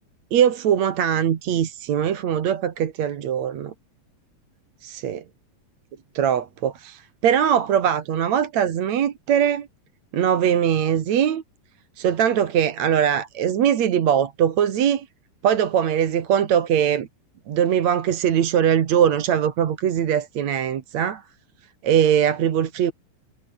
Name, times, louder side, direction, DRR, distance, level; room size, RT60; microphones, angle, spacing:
voice 1, 0.3-3.7 4.8-5.2 6.1-9.7 10.1-11.4 12.0-15.1 15.4-17.1 17.5-21.2 21.8-22.9, right 9 dB, 55° right, 2.7 m, -21 dB
omnidirectional pair, 4.0 m